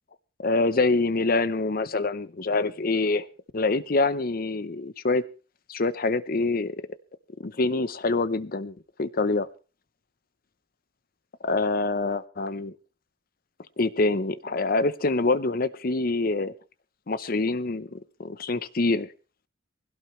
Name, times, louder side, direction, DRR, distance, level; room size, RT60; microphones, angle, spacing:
voice 1, 0.4-3.3 3.5-5.2 5.7-6.8 7.4-9.5 11.4-12.7 13.8-16.5 17.1-19.1, left 3 dB, 50° left, 0.7 m, -25 dB
20.5 x 16.5 x 3.2 m
head